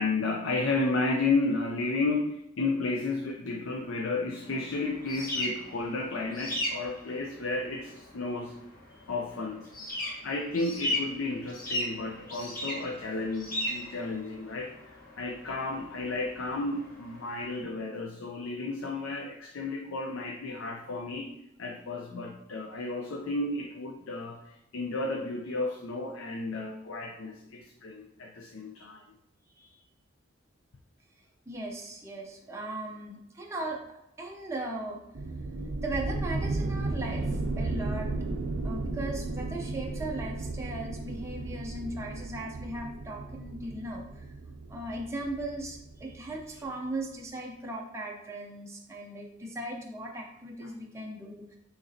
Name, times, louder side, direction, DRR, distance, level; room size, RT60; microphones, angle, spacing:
voice 1, 0.0-8.5 9.1-9.7 10.2-21.3 21.6-29.0 50.6-50.7, left 3 dB, 80° left, 1 dB, 0.5 m, -32 dB
sound 1, 4.4-17.6, left 1 dB, 45° left, 1.3 m, -37 dB
voice 2, 31.5-33.8 34.2-35.0 35.8-38.1 38.6-44.3 44.7-51.6, right 1 dB, 15° right, -1 dB, 0.5 m, -38 dB
sound 2, 35.1-46.6, right 2 dB, 80° right, 0.5 m, -34 dB
6.4 x 3.0 x 2.7 m, 0.82 s
head